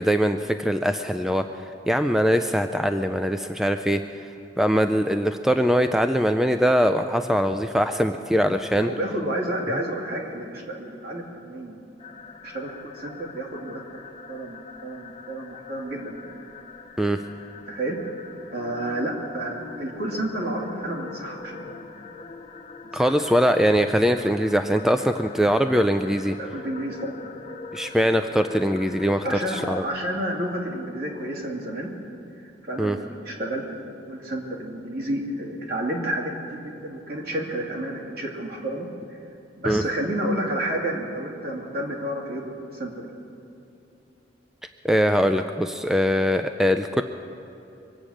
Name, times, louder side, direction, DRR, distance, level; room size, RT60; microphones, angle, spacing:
voice 1, 0.0-1.5 1.9-4.0 4.6-8.9 17.0-17.2 22.9-26.4 27.7-29.8 32.8-33.0 39.6-39.8 44.8-47.0, equal, ahead, 7 dB, 0.3 m, -22 dB
voice 2, 8.8-11.8 12.1-14.0 14.3-16.4 17.7-18.0 18.5-22.0 22.9-23.1 26.4-27.2 29.2-31.9 32.6-39.2 39.5-43.1, right 1 dB, 55° right, -1 dB, 2.4 m, -31 dB
sound 1, 12.0-29.8, left 4 dB, 35° left, 0.7 m, -42 dB
23.5 x 8.6 x 6.4 m, 2.9 s
head